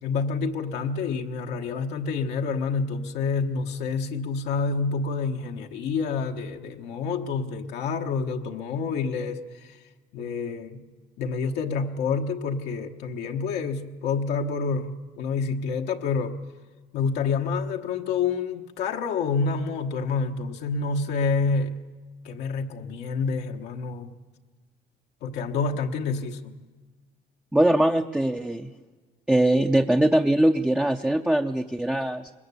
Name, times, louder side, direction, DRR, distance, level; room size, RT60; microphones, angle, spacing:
voice 1, 0.0-9.8 10.1-10.8 11.2-16.4 16.9-21.8 22.2-24.1 25.2-26.6, left 4 dB, 80° left, 1.2 m, -28 dB
voice 2, 27.5-28.7 29.3-32.3, right 1 dB, 5° right, 0.6 m, -22 dB
22.0 x 20.0 x 8.3 m
cardioid pair, 110°, 17 cm